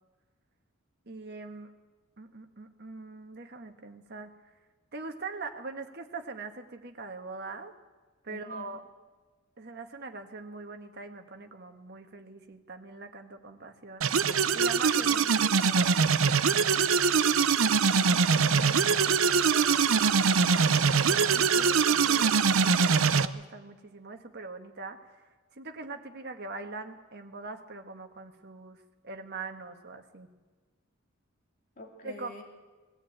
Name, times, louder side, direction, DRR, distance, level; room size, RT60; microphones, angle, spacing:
voice 1, 1.1-1.7 2.2-4.3 4.9-7.7 8.2-8.8 9.6-14.1 14.5-16.0 19.3-25.2 25.6-30.3 32.0-32.4, right 3 dB, 55° right, 5 dB, 1.6 m, -42 dB
voice 2, 8.3-8.8 17.9-19.1 31.8-32.4, left 2 dB, 40° left, 1 dB, 2.7 m, -44 dB
sound 1, 14.0-23.3, right 5 dB, 75° right, 0.7 m, -23 dB
21.0 x 14.5 x 8.9 m, 1.3 s
head